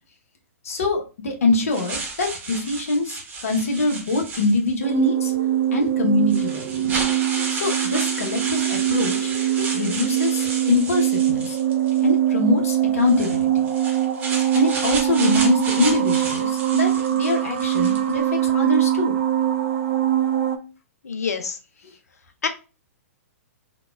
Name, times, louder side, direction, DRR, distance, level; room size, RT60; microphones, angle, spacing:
voice 1, 0.6-5.3 5.7-6.9 7.5-9.3 9.7-11.6 12.0-13.7 14.5-16.9 17.2-19.1 21.8-21.9, left 3 dB, 70° left, 2 dB, 0.9 m, -24 dB
sound 1, 1.7-4.9 5.7-5.8 6.3-12.1 13.0-18.2, right 3 dB, 20° right, 0.9 m, -32 dB
sound 2, 4.8-20.6, right 12 dB, 60° right, 0.4 m, -22 dB
voice 2, 21.1-21.5 22.4-22.5, left 6 dB, 85° left, 8 dB, 0.5 m, -25 dB
3.9 x 2.3 x 2.3 m, 0.33 s
hypercardioid pair, 120°, 8 cm